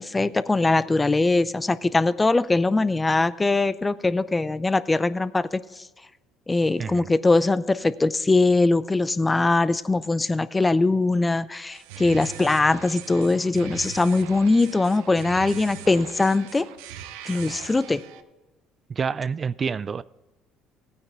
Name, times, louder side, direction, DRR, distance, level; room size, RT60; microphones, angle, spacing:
voice 1, 0.0-5.8 6.5-16.7 17.3-18.0, left 3 dB, 20° left, 0.5 m, -21 dB
sound 1, 11.7-18.2, right 10 dB, 85° right, 0.7 m, -40 dB
voice 2, 18.9-20.0, right 6 dB, 35° right, 0.3 m, -28 dB
15.5 x 9.5 x 3.4 m
supercardioid pair, 75°, 0 cm